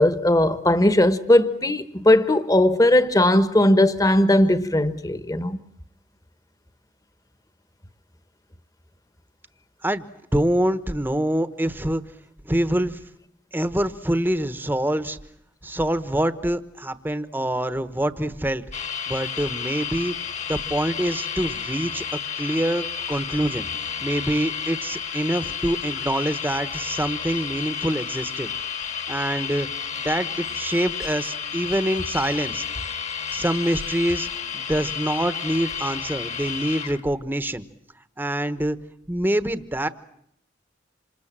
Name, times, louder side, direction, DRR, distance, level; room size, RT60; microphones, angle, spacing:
voice 1, 0.0-5.6, left 1 dB, 20° left, 1.2 m, -18 dB
voice 2, 10.3-12.0 12.4-13.0 13.5-15.2 15.6-18.6 19.1-20.1 20.5-22.0 22.4-23.7 24.0-28.5 29.1-29.7 30.0-32.6 33.3-34.3 34.5-37.6 38.2-38.8 39.1-39.9, right 1 dB, 10° right, 1.1 m, -25 dB
sound 1, 18.7-37.0, left 7 dB, 35° left, 1.5 m, -31 dB
27.5 x 27.0 x 7.5 m
head